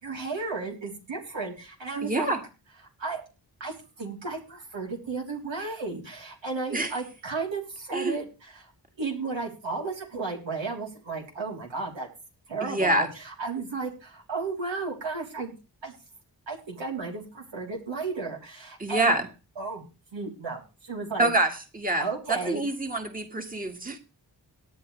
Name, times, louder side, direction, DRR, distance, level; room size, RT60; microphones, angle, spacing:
voice 1, 0.0-2.3 3.0-3.2 3.6-8.7 9.0-12.1 12.5-15.5 15.8-15.9 16.5-19.2 19.6-21.3 22.0-22.6, right 4 dB, 80° right, -1 dB, 3.8 m, -34 dB
voice 2, 2.0-2.4 6.7-6.9 7.9-8.2 12.6-13.1 18.8-19.3 21.2-24.0, right 2 dB, 20° right, 3 dB, 2.1 m, -26 dB
18.0 x 10.0 x 3.3 m, 0.32 s
cardioid pair, 60°, 44 cm